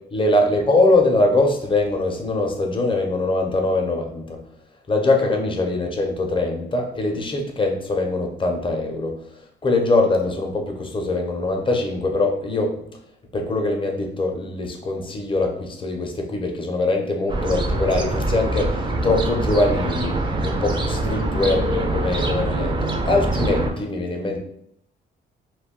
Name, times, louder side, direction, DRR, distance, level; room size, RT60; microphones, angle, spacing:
voice 1, 0.1-4.4 4.9-9.1 9.6-12.7 13.3-24.4, left 2 dB, 25° left, 3 dB, 0.5 m, -22 dB
sound 1, 17.3-23.7, right 2 dB, 25° right, 0.4 m, -24 dB
2.2 x 2.2 x 3.6 m, 0.72 s
cardioid pair, 90°, 20 cm